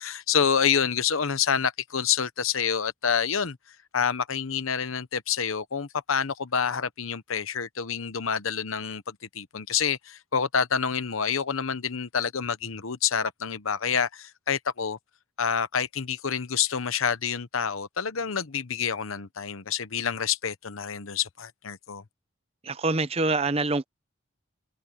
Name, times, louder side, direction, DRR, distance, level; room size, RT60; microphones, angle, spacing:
voice 1, 0.0-3.6 3.9-15.0 15.4-22.0, left 7 dB, 85° left, 1.0 m, -28 dB
voice 2, 22.6-23.8, right 3 dB, 30° right, 0.7 m, -25 dB
head